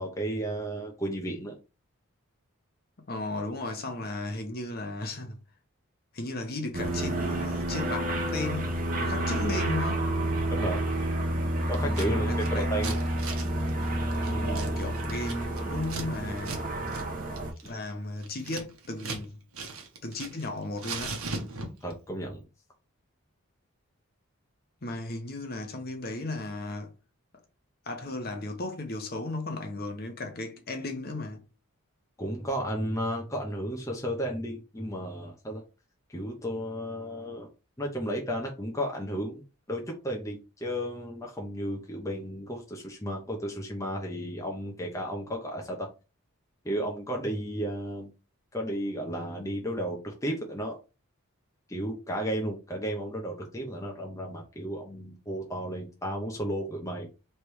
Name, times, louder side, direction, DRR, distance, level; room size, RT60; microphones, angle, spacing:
voice 1, 0.0-1.5 10.5-10.8 11.7-13.0 21.8-22.4 32.2-35.6 36.1-37.5 37.8-45.9 46.6-48.1 48.5-50.8 51.7-57.1, equal, 15° left, 0.7 m, -33 dB
voice 2, 3.1-5.4 6.1-10.1 11.8-12.7 14.3-16.8 17.2-17.3 17.6-19.4 20.0-21.2 24.8-26.9 27.8-31.4, left 2 dB, 45° left, 0.9 m, -35 dB
sound 1, 6.7-17.5, right 1 dB, 40° right, 1.0 m, -29 dB
Scissors, 11.7-12.1 12.4-16.1 16.4-16.6 16.9-17.1 17.4-19.3 19.5-20.5 20.8-21.9, right 3 dB, 75° right, 1.1 m, -38 dB
3.3 x 3.3 x 4.6 m
head